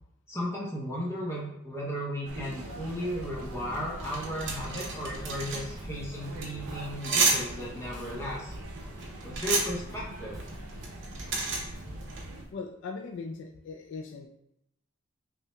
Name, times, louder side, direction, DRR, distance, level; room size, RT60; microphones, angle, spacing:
voice 1, 0.3-8.5 9.2-10.4, equal, 15° left, -5 dB, 0.8 m, -35 dB
sound 1, 2.3-12.4, right 1 dB, 80° right, 0.7 m, -43 dB
sound 2, 3.1-12.4, right 3 dB, 60° right, 0.8 m, -32 dB
Drum kit / Drum, 4.8-12.1, equal, 15° right, 0.5 m, -48 dB
voice 2, 12.5-14.3, left 4 dB, 60° left, 4 dB, 0.3 m, -39 dB
5.6 x 2.7 x 2.2 m, 0.79 s
head